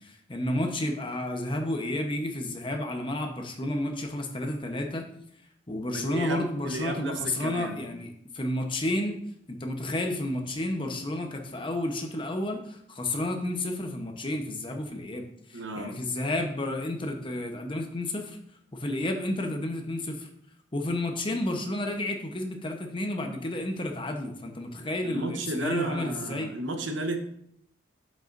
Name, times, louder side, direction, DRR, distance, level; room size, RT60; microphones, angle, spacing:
voice 1, 0.0-5.0 5.7-9.2 9.5-18.4 18.7-20.3 20.7-26.5, left 1 dB, 25° left, 3 dB, 0.9 m, -31 dB
voice 2, 5.9-7.8 15.5-16.0 25.0-27.3, right 2 dB, 75° right, 6 dB, 1.0 m, -33 dB
8.3 x 7.8 x 2.6 m, 0.71 s
head